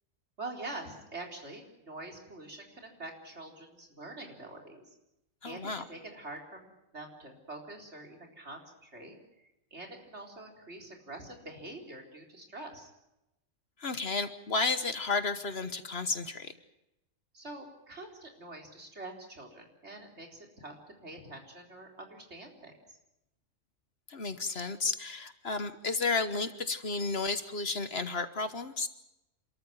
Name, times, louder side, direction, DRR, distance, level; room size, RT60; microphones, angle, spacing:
voice 1, 0.4-4.9 5.4-12.9 17.3-20.8 21.0-23.0, right 2 dB, 55° right, 2 dB, 4.4 m, -45 dB
voice 2, 5.4-5.8 13.8-16.5 24.1-28.9, left 4 dB, 55° left, 11 dB, 1.4 m, -32 dB
27.5 x 14.0 x 9.4 m, 0.90 s
omnidirectional pair, 1.3 m